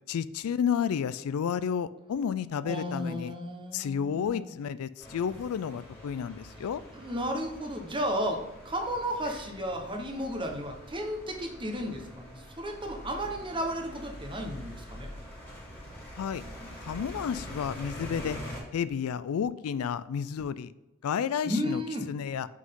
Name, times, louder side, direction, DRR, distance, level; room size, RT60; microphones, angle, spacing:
voice 1, 0.1-3.3 3.7-6.8 16.1-16.4 16.8-18.4 18.7-20.7 21.0-21.8 22.1-22.5, left 7 dB, 80° left, 16 dB, 0.3 m, -31 dB
voice 2, 2.6-4.5 6.9-15.1 18.0-18.1 21.4-22.1, equal, 25° right, 3 dB, 1.0 m, -33 dB
sound 1, 5.0-18.6, equal, 10° left, 2.0 m, -45 dB
6.2 x 5.6 x 3.7 m, 1.0 s
head